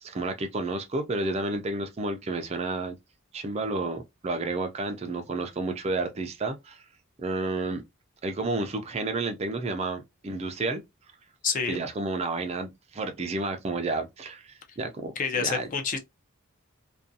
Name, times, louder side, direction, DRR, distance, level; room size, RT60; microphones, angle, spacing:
voice 1, 0.0-2.9 3.3-6.8 7.2-7.8 8.2-10.8 11.7-15.7, right 3 dB, 30° right, 0.4 m, -31 dB
voice 2, 11.4-11.8 15.2-16.0, left 6 dB, 40° left, 0.5 m, -28 dB
2.4 x 2.2 x 2.6 m
head